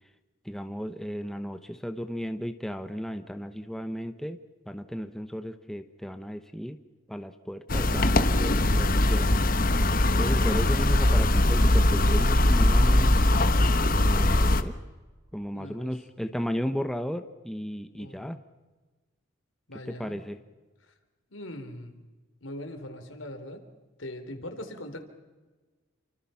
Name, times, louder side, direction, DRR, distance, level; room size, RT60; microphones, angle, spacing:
voice 1, 0.4-4.4 4.7-6.8 7.1-9.3 10.1-13.1 14.0-14.7 15.3-18.4 19.9-20.4, equal, ahead, 7 dB, 1.0 m, -34 dB
sound 1, 7.7-14.6, left 1 dB, 45° left, 1.2 m, -21 dB
voice 2, 15.5-15.9 18.0-18.3 19.7-20.2 20.8-20.9 21.3-22.0 22.4-23.6 24.0-25.1, left 1 dB, 80° left, 6 dB, 3.8 m, -41 dB
29.0 x 25.0 x 5.8 m, 1.3 s
head